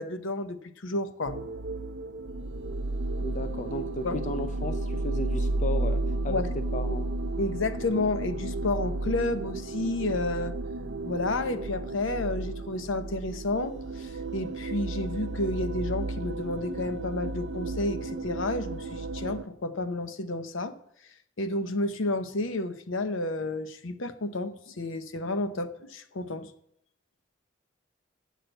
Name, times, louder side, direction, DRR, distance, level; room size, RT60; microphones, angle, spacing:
voice 1, 0.0-1.4 4.0-4.2 6.3-6.5 7.4-10.6 11.1-20.7 21.4-26.5, left 2 dB, 75° left, 10 dB, 0.8 m, -31 dB
sound 1, 1.3-19.4, right 2 dB, 65° right, 0.6 m, -33 dB
voice 2, 3.2-6.4 6.7-7.1, left 2 dB, 35° left, 9 dB, 0.5 m, -35 dB
8.2 x 6.2 x 7.8 m, 0.70 s
head